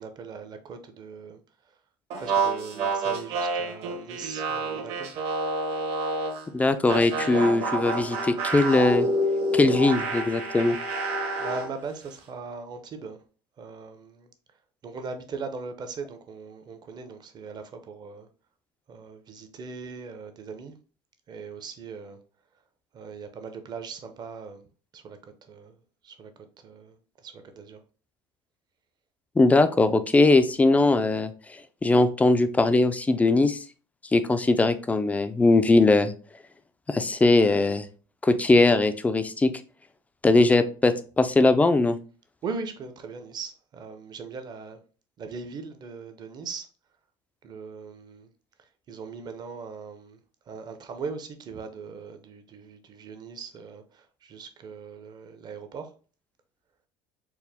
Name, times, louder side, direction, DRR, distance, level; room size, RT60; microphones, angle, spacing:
voice 1, 0.0-1.4 2.2-5.1 11.4-13.2 13.6-14.3 14.8-18.3 18.9-20.7 21.3-22.2 22.9-24.6 24.9-25.2 25.5-25.8 26.0-26.3 26.6-27.8 42.4-44.8 45.2-46.7 47.4-48.3 48.9-50.2 50.5-55.9, right 5 dB, 35° right, 0.7 m, -39 dB
sound 1, 2.1-6.4 6.9-11.7, right 2 dB, 55° right, 1.2 m, -28 dB
voice 2, 6.5-9.1 9.5-10.8 29.4-31.3 31.8-33.6 34.1-36.1 36.9-37.9 38.2-39.5 40.2-42.0, left 2 dB, 10° left, 0.3 m, -20 dB
4.6 x 2.1 x 3.4 m
supercardioid pair, 115°, 12 cm